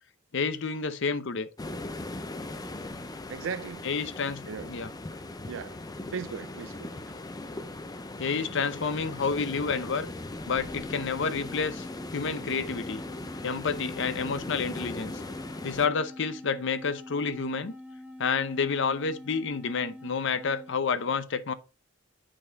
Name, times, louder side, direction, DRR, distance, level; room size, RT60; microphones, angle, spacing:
voice 1, 0.3-1.5 3.8-4.9 8.2-10.1 10.5-11.9 12.1-13.0 13.4-15.2 15.6-17.7 18.2-21.5, left 5 dB, 65° left, 0.7 m, -29 dB
sound 1, 1.6-15.9, left 2 dB, 20° left, 0.5 m, -39 dB
voice 2, 3.3-3.9 4.5-4.7 5.5-5.8 6.1-7.0, right 6 dB, 70° right, 0.4 m, -37 dB
sound 2, 10.4-20.8, left 1 dB, 10° right, 1.6 m, -45 dB
7.6 x 4.2 x 4.0 m
head